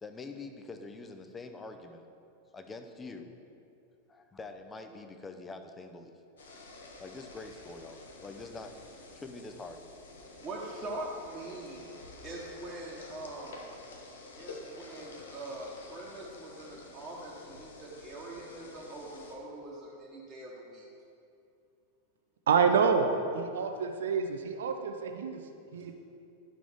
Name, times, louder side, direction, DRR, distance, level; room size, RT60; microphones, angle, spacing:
voice 1, 0.0-2.1 2.5-3.3 4.1-6.1 7.0-9.9, left 3 dB, 15° left, 6 dB, 0.6 m, -45 dB
sound 1, 6.4-19.4, left 2 dB, 65° left, 1.0 m, -50 dB
voice 2, 10.4-11.8 12.2-13.7 14.4-20.8 25.7-25.9, right 2 dB, 20° right, -6 dB, 1.2 m, -43 dB
voice 3, 22.5-25.9, right 5 dB, 65° right, 5 dB, 0.5 m, -28 dB
10.5 x 6.0 x 3.5 m, 2.5 s
figure-of-eight pair, 90°, 0 cm